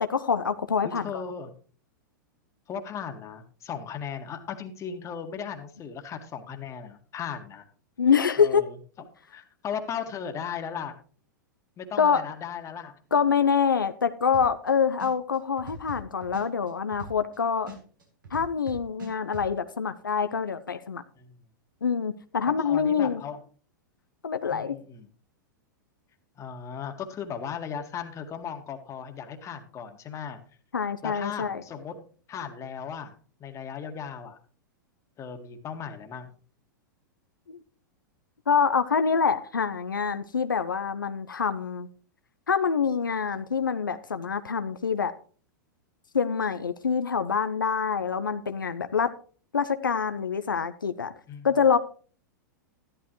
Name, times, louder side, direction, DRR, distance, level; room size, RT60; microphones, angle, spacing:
voice 1, 0.0-1.1 8.0-8.6 12.0-12.2 13.1-17.7 18.3-21.0 21.8-23.2 24.2-24.8 30.7-31.6 37.5-37.6 38.5-41.9 42.5-45.1 46.1-49.1 49.5-51.1 51.4-51.8, left 6 dB, 90° left, 10 dB, 0.7 m, -25 dB
voice 2, 0.8-1.5 2.7-7.6 8.4-8.8 9.3-11.0 11.8-13.0 21.2-21.4 22.4-23.4 24.5-25.1 26.4-30.4 31.0-32.0 32.3-34.4 35.2-36.3 51.3-51.5, left 7 dB, 30° left, 5 dB, 1.8 m, -37 dB
sound 1, 14.3-14.7 15.0-17.4 17.7-19.5, right 1 dB, 85° right, 4.4 m, -41 dB
13.0 x 11.5 x 3.1 m, 0.42 s
hypercardioid pair, 105°, 11 cm